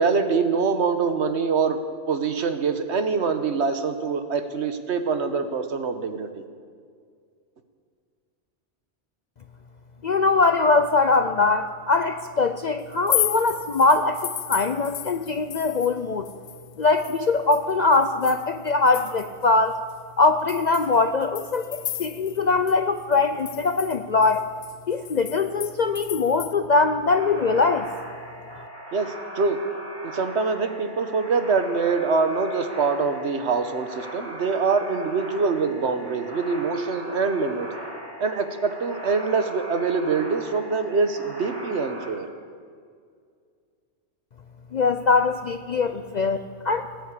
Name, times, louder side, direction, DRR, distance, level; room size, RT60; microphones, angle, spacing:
voice 1, 0.0-1.8 2.1-6.4 28.9-29.6 30.0-37.7 38.2-42.3, right 4 dB, 65° right, 8 dB, 1.3 m, -24 dB
voice 2, 10.0-14.2 14.5-16.3 16.8-19.8 20.2-24.4 24.9-27.9 44.7-46.9, left 3 dB, 55° left, 9 dB, 0.5 m, -22 dB
sound 1, 12.9-16.0 16.3-19.5 19.9-20.0 20.5-22.4 22.7-22.8 23.1-26.5, left 12 dB, 85° left, 0.9 m, -33 dB
sound 2, 27.1-42.1, equal, 20° right, 3.1 m, -39 dB
18.5 x 8.2 x 8.3 m, 2.1 s
omnidirectional pair, 1.2 m